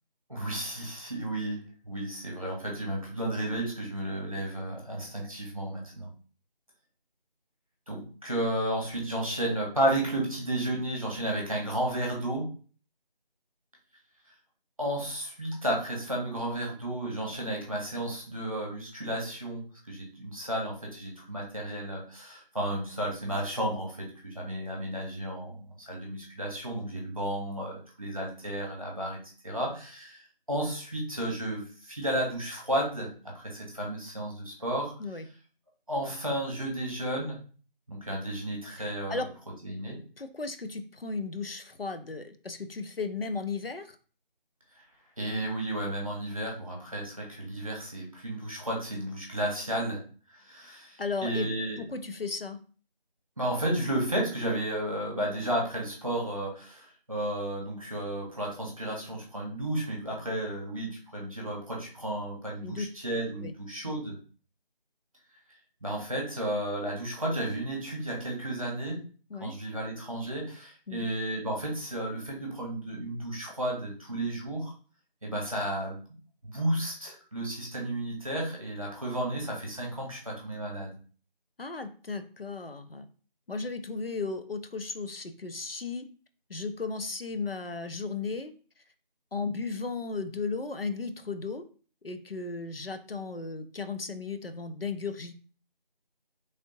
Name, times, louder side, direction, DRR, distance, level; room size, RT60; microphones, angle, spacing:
voice 1, 0.3-6.1 7.9-12.5 14.8-29.2 29.4-34.9 35.9-37.4 37.9-39.2 39.6-40.0 45.2-50.0 50.4-51.8 53.4-64.1 65.8-69.0 69.4-74.7 75.2-76.0 76.4-80.9, right 1 dB, 35° right, -2 dB, 1.2 m, -33 dB
voice 2, 40.2-44.0 51.0-51.5 51.8-52.6 62.6-62.9 63.4-63.5 64.1-64.2 69.3-69.6 70.9-71.1 81.6-83.1 83.5-86.1 86.5-88.5 89.3-91.6 92.0-95.3, left 4 dB, 75° left, 9 dB, 0.7 m, -35 dB
3.6 x 3.4 x 2.8 m, 0.39 s
figure-of-eight pair, 175°, 29 cm